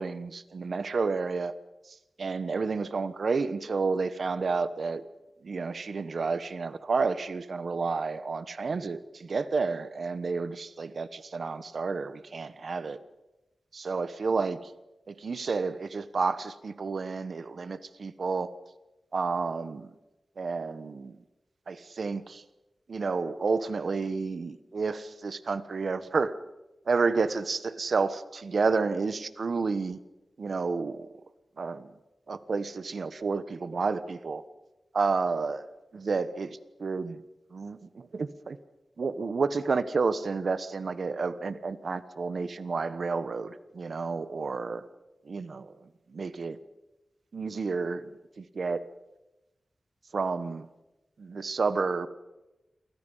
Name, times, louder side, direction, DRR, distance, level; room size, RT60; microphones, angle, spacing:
voice 1, 0.0-1.5 2.2-5.0 5.4-13.0 13.7-14.6 15.1-18.5 19.1-19.9 20.4-21.1 21.7-22.4 22.9-26.3 26.9-30.0 30.4-31.1 31.6-31.9 32.3-34.4 34.9-35.6 35.9-37.2 37.5-38.6 39.0-44.8 45.3-45.7 46.1-46.6 47.3-48.1 48.4-48.8 50.1-50.7 51.2-52.1, right 4 dB, 65° right, 13 dB, 1.2 m, -30 dB
28.5 x 24.0 x 5.6 m, 1.0 s
wide cardioid pair, 115°, 0 cm